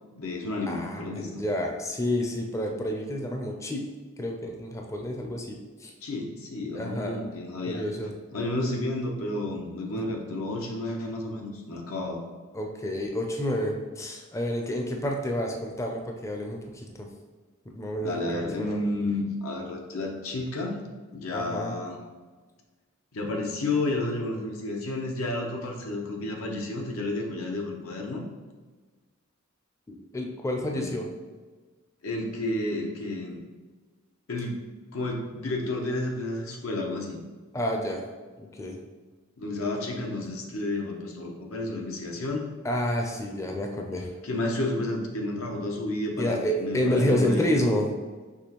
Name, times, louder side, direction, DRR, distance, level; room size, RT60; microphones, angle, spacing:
voice 1, 0.1-1.4 6.0-7.9 8.3-12.2 18.0-20.8 21.1-22.0 23.1-28.2 30.6-30.9 32.0-33.4 34.3-34.6 34.9-37.2 39.4-42.5 44.2-47.8, left 2 dB, 85° left, 1 dB, 0.8 m, -31 dB
voice 2, 0.7-3.9 4.2-5.9 6.7-7.2 7.7-8.1 12.5-17.1 17.7-18.8 21.3-21.7 29.9-31.1 37.5-38.0 38.4-38.8 42.6-44.1 46.2-47.9, equal, 15° left, 1 dB, 0.4 m, -29 dB
6.1 x 3.0 x 2.9 m, 1.3 s
head